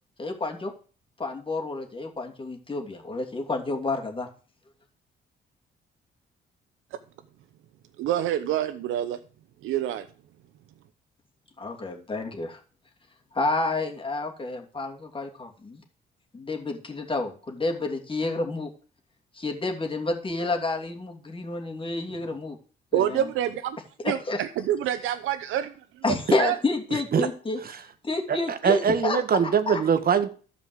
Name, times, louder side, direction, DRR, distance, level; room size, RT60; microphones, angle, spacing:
voice 1, 0.2-0.7 1.2-4.3 11.6-12.6 13.3-15.8 16.3-18.7 19.3-22.6 22.9-23.2 24.0-24.4 26.0-27.6 28.0-29.2 29.7-29.8, left 2 dB, 25° left, 2 dB, 2.8 m, -29 dB
voice 2, 8.0-9.2 9.6-10.1 22.9-23.8 24.0-25.7 26.4-26.6, right 11 dB, 85° right, 10 dB, 0.8 m, -27 dB
voice 3, 28.3-30.3, right 7 dB, 50° right, 11 dB, 1.4 m, -22 dB
12.5 x 5.2 x 8.0 m, 0.39 s
cardioid pair, 90°, 20 cm